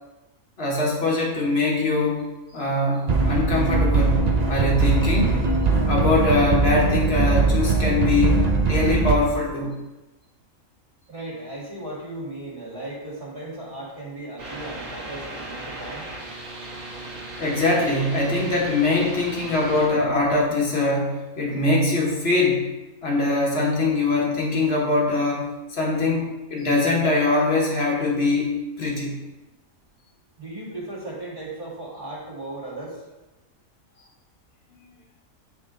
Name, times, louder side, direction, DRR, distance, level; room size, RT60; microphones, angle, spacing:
voice 1, 0.6-2.2 2.5-5.4 5.9-9.7 17.4-22.6 23.0-29.2, left 2 dB, 45° left, -2 dB, 1.5 m, -22 dB
sound 1, 3.1-9.1, right 3 dB, 50° right, 0.5 m, -21 dB
voice 2, 11.1-16.1 30.4-33.0, right 2 dB, 25° right, -8 dB, 2.0 m, -36 dB
sound 2, 14.4-19.9, right 2 dB, 70° right, 1.7 m, -37 dB
8.8 x 3.4 x 3.8 m, 1.1 s
omnidirectional pair, 1.5 m